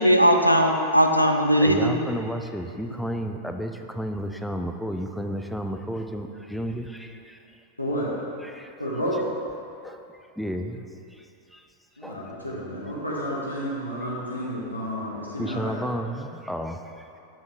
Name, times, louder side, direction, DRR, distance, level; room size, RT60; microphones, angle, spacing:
voice 1, 0.0-2.1, equal, 90° right, 4 dB, 0.4 m, -19 dB
voice 2, 1.6-7.4 8.4-8.8 9.7-10.0 10.4-10.8 11.1-11.7 12.0-12.2 15.4-17.2, equal, ahead, 5 dB, 0.4 m, -32 dB
voice 3, 7.8-8.1 8.8-9.2 12.0-15.7, equal, 85° left, -6 dB, 1.0 m, -30 dB
7.1 x 6.0 x 3.3 m, 2.6 s
figure-of-eight pair, 90°, 0 cm